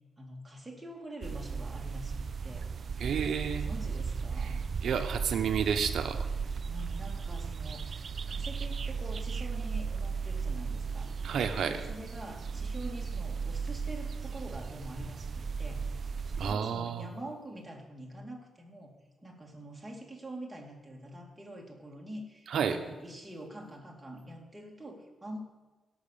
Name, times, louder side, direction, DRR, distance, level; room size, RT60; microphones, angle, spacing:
voice 1, 0.2-2.7 3.5-4.6 6.4-11.1 11.7-16.1 16.4-25.4, right 1 dB, 10° right, -1 dB, 2.3 m, -45 dB
sound 1, 1.2-16.5, right 5 dB, 45° right, 0.3 m, -36 dB
voice 2, 3.0-3.6 4.4-4.5 4.8-6.3 11.2-11.8 16.4-17.1 22.5-22.8, right 7 dB, 65° right, 8 dB, 1.1 m, -30 dB
16.5 x 6.1 x 7.0 m, 1.2 s
wide cardioid pair, 145°, 0 cm